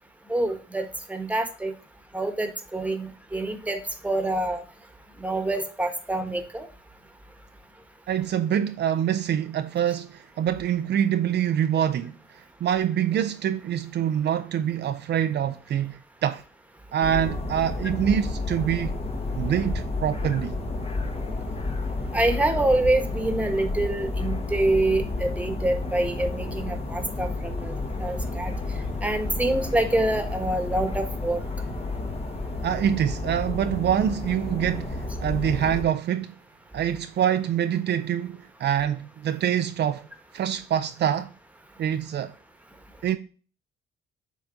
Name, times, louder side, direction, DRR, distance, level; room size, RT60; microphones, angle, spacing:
voice 1, 0.3-1.7 2.1-4.6 5.2-6.7 22.1-28.5 29.0-31.4, right 2 dB, 5° right, 1.4 m, -26 dB
voice 2, 8.1-16.4 16.9-19.0 19.3-20.6 32.6-36.3 36.7-40.1 40.3-41.3 41.8-42.3 43.0-43.2, right 9 dB, 60° right, 0.5 m, -25 dB
sound 1, 17.0-35.8, left 2 dB, 30° left, 1.2 m, -31 dB
7.3 x 4.1 x 3.7 m
cardioid pair, 90°, 20 cm